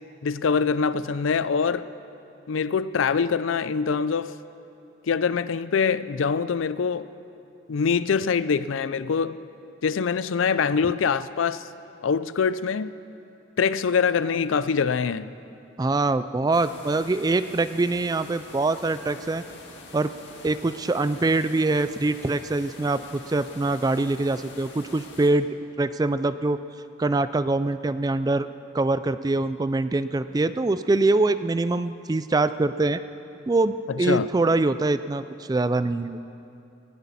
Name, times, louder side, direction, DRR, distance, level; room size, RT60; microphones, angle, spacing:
voice 1, 0.2-1.9 2.5-4.4 5.1-7.1 7.7-9.4 9.8-11.6 12.0-12.9 13.6-15.3 33.9-34.3, left 6 dB, 90° left, 0.4 m, -24 dB
voice 2, 15.8-19.4 19.9-20.1 20.4-25.5 25.8-26.6 27.0-28.5 28.7-33.0 33.5-36.2, right 2 dB, 20° right, 0.3 m, -24 dB
sound 1, 16.5-25.3, left 3 dB, 65° left, 1.9 m, -45 dB
19.0 x 16.0 x 4.2 m
head